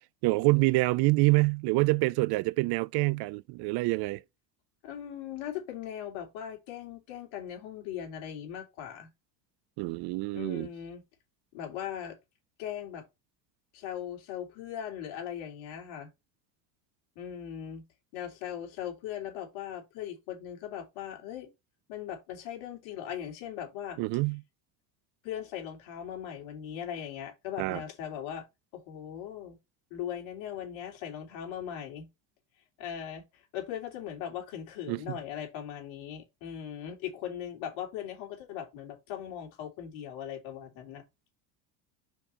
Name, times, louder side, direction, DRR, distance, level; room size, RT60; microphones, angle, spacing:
voice 1, 0.2-4.2 9.8-10.7 24.0-24.4 27.6-27.8 34.9-35.2, right 23 dB, 50° right, 0.5 m, -26 dB
voice 2, 4.8-9.1 10.3-11.0 11.5-12.2 12.6-13.0 13.7-16.1 17.1-17.8 18.1-21.5 21.9-24.0 25.2-28.4 28.7-29.6 29.9-32.1 32.8-41.0, left 10 dB, 65° left, 3.1 m, -39 dB
5.1 x 4.4 x 5.5 m
supercardioid pair, 90°, 50 cm